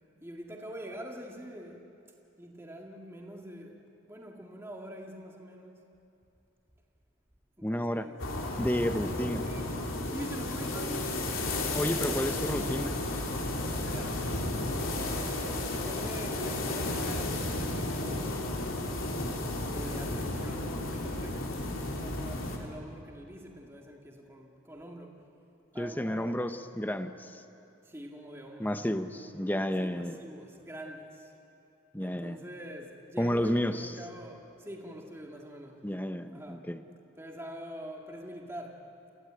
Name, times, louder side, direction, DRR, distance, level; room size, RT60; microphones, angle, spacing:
voice 1, 0.2-1.8 2.4-3.8 4.1-5.8 7.6-8.2 9.4-11.5 11.8-12.5 13.7-14.2 14.8-18.5 19.7-25.2 25.7-26.4 27.9-28.8 29.8-31.3 32.0-35.8 36.3-36.6 37.2-38.8, equal, 10° right, 0 dB, 2.1 m, -44 dB
voice 2, 7.6-8.1 8.6-9.4 11.7-13.0 25.8-27.4 28.6-30.2 31.9-32.4 33.2-33.9 35.8-36.8, equal, 10° left, 9 dB, 0.8 m, -31 dB
sound 1, 8.2-22.6, left 2 dB, 90° left, 3.1 m, -33 dB
29.0 x 16.0 x 8.9 m, 2.8 s
head